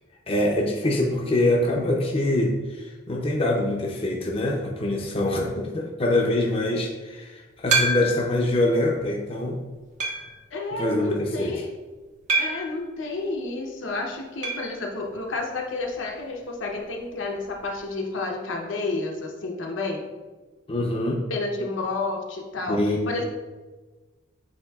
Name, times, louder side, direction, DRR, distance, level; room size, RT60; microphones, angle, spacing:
voice 1, 0.3-9.6 10.7-11.5 20.7-21.2 22.7-23.2, left 1 dB, 30° left, -1 dB, 0.5 m, -24 dB
sound 1, 7.7-8.4 9.0-9.1 10.0-10.4 12.3-12.8 14.4-14.7 15.0-15.1 15.3-15.4 17.4-17.5, right 3 dB, 40° right, 0.5 m, -25 dB
voice 2, 10.5-11.7 12.4-20.0 21.3-22.8 23.1-23.3, left 3 dB, 80° left, 0 dB, 0.7 m, -30 dB
8.1 x 2.7 x 2.3 m, 1.3 s
head